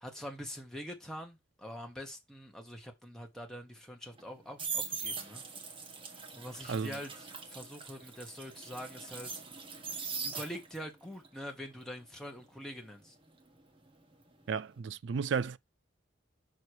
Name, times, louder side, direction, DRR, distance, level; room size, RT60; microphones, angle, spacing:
voice 1, 0.0-5.4 6.1-9.3 10.2-13.1, equal, ahead, 1.2 m, -45 dB
sound 1, 4.2-10.9 11.2-14.1 14.4-14.7, right 5 dB, 30° right, 1.2 m, -41 dB
voice 2, 14.5-15.6, right 6 dB, 70° right, 0.4 m, -33 dB
5.6 x 4.8 x 4.6 m
head